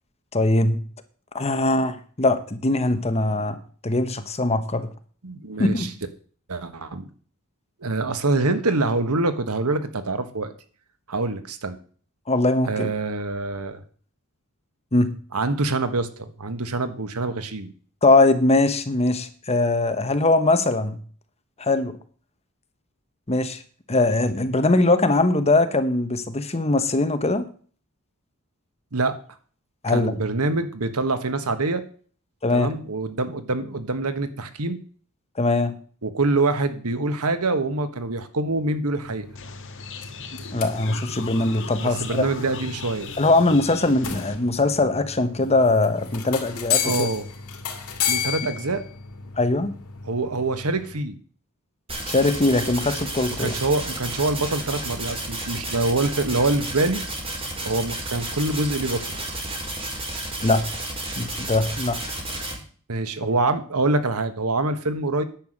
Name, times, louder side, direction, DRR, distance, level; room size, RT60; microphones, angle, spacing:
voice 1, 0.3-0.8 1.3-4.9 5.6-5.9 12.3-12.9 14.9-15.1 18.0-21.0 21.6-22.0 23.3-23.6 23.9-27.4 29.8-30.1 32.4-32.7 35.4-35.8 40.5-42.3 43.2-47.1 49.4-49.7 52.1-53.5 60.4-60.6 61.2-62.0, left 2 dB, 30° left, 10 dB, 1.2 m, -21 dB
voice 2, 5.2-5.9 6.5-7.1 7.8-10.5 11.1-11.8 12.7-13.8 15.3-17.7 28.9-29.2 29.9-31.8 32.5-34.8 36.0-39.3 41.8-43.1 46.8-47.3 48.1-48.8 50.0-51.2 53.4-57.0 57.6-59.1 62.9-65.2, right 2 dB, 85° right, 10 dB, 1.4 m, -25 dB
sound 1, 39.0-51.0, left 8 dB, 85° left, 2.4 m, -33 dB
sound 2, 39.3-44.3, left 5 dB, 60° left, 1.7 m, -38 dB
sound 3, 51.9-62.5, right 1 dB, 25° right, 4.9 m, -32 dB
10.5 x 7.0 x 7.8 m, 0.43 s
head